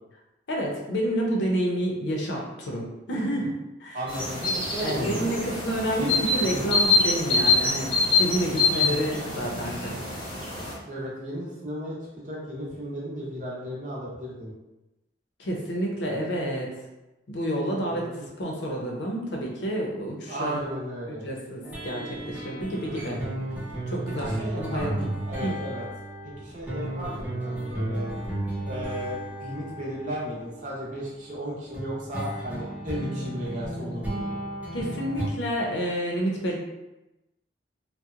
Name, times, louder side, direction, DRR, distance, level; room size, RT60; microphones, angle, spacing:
voice 1, 0.5-3.5 3.8-4.0 4.8-10.0 15.4-16.7 17.3-18.1 18.4-20.6 21.1-23.2 23.9-25.1 25.4-25.5 34.7-36.6, right 1 dB, 85° left, -1 dB, 0.6 m, -29 dB
voice 2, 3.9-5.3 6.0-6.7 8.8-9.1 10.9-12.0 12.2-14.5 17.9-18.3 20.3-21.3 22.7-23.3 24.2-24.9 25.2-25.8 26.4-28.1 28.7-34.4, equal, 45° right, -5 dB, 0.7 m, -35 dB
sound 1, 4.1-10.7, left 3 dB, 30° left, 0.8 m, -25 dB
sound 2, 21.6-31.1 31.7-35.2, right 1 dB, 10° right, 0.7 m, -34 dB
2.8 x 2.0 x 2.4 m, 0.98 s
head